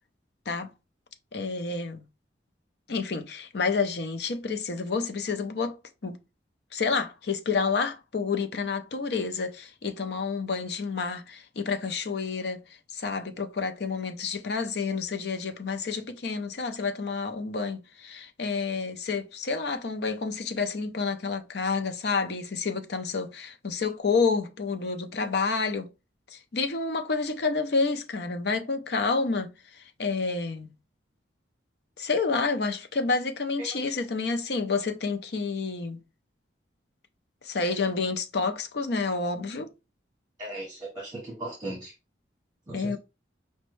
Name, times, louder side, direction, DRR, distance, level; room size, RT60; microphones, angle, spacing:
voice 1, 1.3-2.0 2.9-5.8 6.0-6.2 6.7-12.6 12.9-25.9 26.3-30.7 32.0-36.0 37.4-39.7 42.7-43.0, left 4 dB, 60° left, 0.5 m, -29 dB
voice 2, 33.6-33.9 40.4-41.9 42.7-43.0, right 1 dB, 20° right, 1.2 m, -38 dB
5.1 x 2.2 x 3.1 m
head